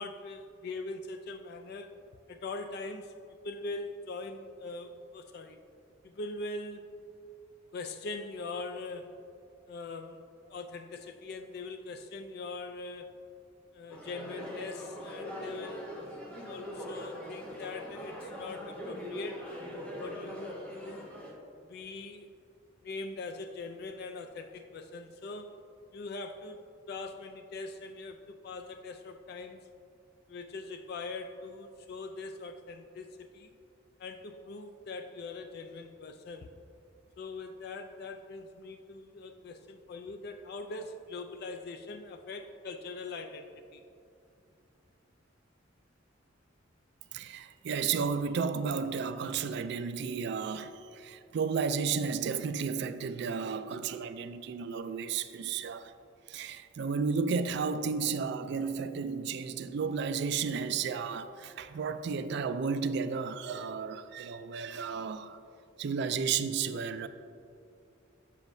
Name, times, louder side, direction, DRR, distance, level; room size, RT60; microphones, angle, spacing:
voice 1, 0.0-1.9 2.3-5.6 6.0-6.9 7.7-9.1 9.7-10.2 10.5-13.2 13.7-16.0 16.4-19.4 20.0-21.1 21.6-22.3 22.8-25.6 25.9-26.6 26.9-29.7 30.3-33.5 34.0-36.5 37.2-43.8, left 3 dB, 55° left, 0.3 m, -42 dB
sound 1, 13.9-21.3, equal, 5° left, 1.0 m, -42 dB
voice 2, 47.1-55.9 56.3-65.4 65.8-67.1, right 5 dB, 60° right, 0.3 m, -33 dB
7.2 x 7.0 x 2.6 m
head